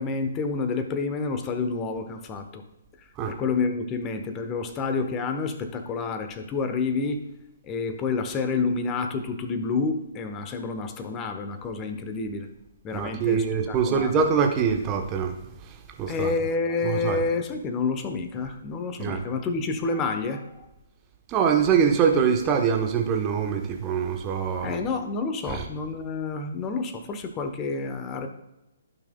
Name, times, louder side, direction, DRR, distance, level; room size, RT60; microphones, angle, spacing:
voice 1, 0.0-2.6 3.3-7.2 7.6-12.5 12.8-14.1 16.1-20.5 24.6-28.3, left 4 dB, 20° left, 7 dB, 1.0 m, -29 dB
voice 2, 12.9-16.3 16.8-17.2 19.0-19.2 21.3-24.8 25.5-25.6, right 6 dB, 20° right, 3 dB, 1.0 m, -24 dB
15.0 x 6.0 x 2.3 m, 0.95 s
figure-of-eight pair, 130°, 0 cm